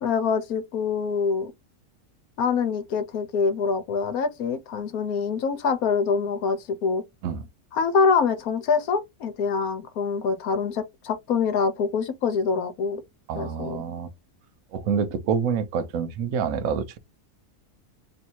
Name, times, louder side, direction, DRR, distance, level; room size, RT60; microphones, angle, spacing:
voice 1, 0.0-1.5 2.4-7.0 7.7-13.0 13.3-13.8, left 5 dB, 75° left, 1.2 m, -25 dB
voice 2, 13.3-14.1 14.7-17.0, right 6 dB, 70° right, 1.1 m, -27 dB
3.1 x 2.7 x 4.4 m
omnidirectional pair, 1.6 m